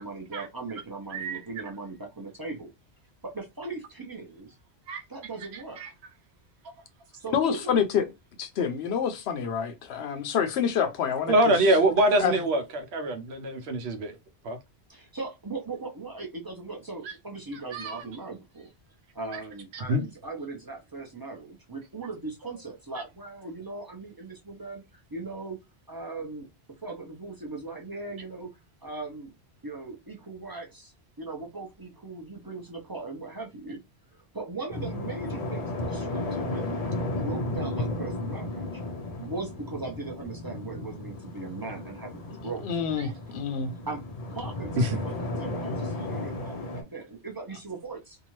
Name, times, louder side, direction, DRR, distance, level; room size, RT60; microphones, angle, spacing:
voice 1, 0.0-2.7 3.2-4.6 5.1-5.8 7.2-7.8 14.9-18.7 19.1-25.6 25.9-26.5 26.8-28.5 28.8-29.3 29.6-33.8 34.1-36.7 37.1-38.7 39.2-42.7 43.9-44.0 44.3-48.2, right 3 dB, 30° right, 0.5 m, -39 dB
voice 2, 1.1-1.4 4.9-5.0 5.4-5.9 11.3-14.2 14.4-14.6 17.0-17.1 17.5-18.0 19.7-20.0 22.9-23.0 43.0-43.1 44.8-45.0, right 1 dB, 75° right, 0.9 m, -25 dB
voice 3, 7.3-8.0 8.4-11.3 12.2-12.3 42.6-43.7, left 7 dB, 75° left, 0.8 m, -27 dB
sound 1, 34.7-46.8, left 2 dB, 45° left, 0.5 m, -34 dB
2.7 x 2.4 x 3.0 m
omnidirectional pair, 1.1 m